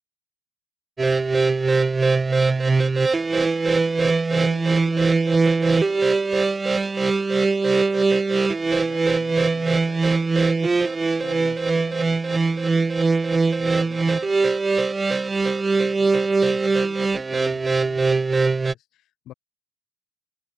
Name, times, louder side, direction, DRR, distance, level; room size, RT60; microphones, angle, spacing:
sound 1, 1.0-18.7, right 3 dB, 20° right, 1.2 m, -21 dB
voice 1, 4.3-6.4 8.5-10.5 11.2-12.9 13.6-14.7 15.8-19.3, left 13 dB, 60° left, 6.3 m, -46 dB
supercardioid pair, 105°, 0 cm